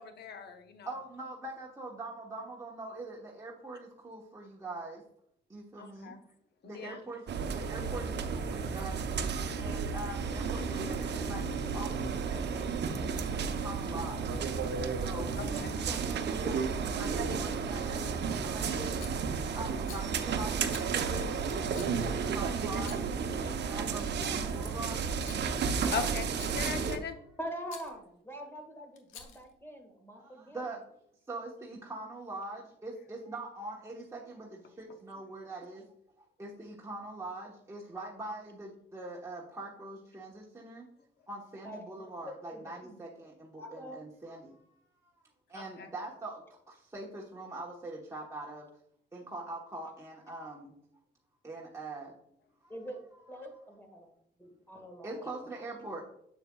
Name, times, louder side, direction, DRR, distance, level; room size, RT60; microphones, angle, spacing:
voice 1, 0.0-0.9 5.8-6.2 6.6-7.0 15.4-15.7 25.9-27.2 45.5-45.9, left 6 dB, 55° left, 7 dB, 0.9 m, -39 dB
voice 2, 0.8-5.0 5.5-6.1 6.6-9.0 9.6-14.5 14.9-18.9 19.5-23.1 23.6-25.1 30.2-30.8 31.3-35.8 36.4-40.9 41.3-44.8 45.0-45.1 45.5-48.7 49.1-50.7 51.4-52.1 52.6-52.7 53.2-53.3 55.0-56.0, right 2 dB, 15° right, -4 dB, 1.1 m, -43 dB
sound 1, 7.3-27.0, right 5 dB, 60° right, 0.7 m, -33 dB
Rattle, 19.0-19.3 19.8-20.1 20.7-20.9 21.7-22.0 22.7-23.2 23.9-24.6 25.1-25.4 26.2-26.7 27.7-27.9 29.0-29.5, left 6 dB, 90° left, 1.0 m, -48 dB
voice 3, 27.4-30.7 41.6-43.0 43.6-44.0 52.7-53.0 53.3-54.1 54.4-55.2, equal, 10° left, 3 dB, 1.7 m, -44 dB
7.2 x 6.7 x 2.3 m, 0.74 s
cardioid pair, 90°, 20 cm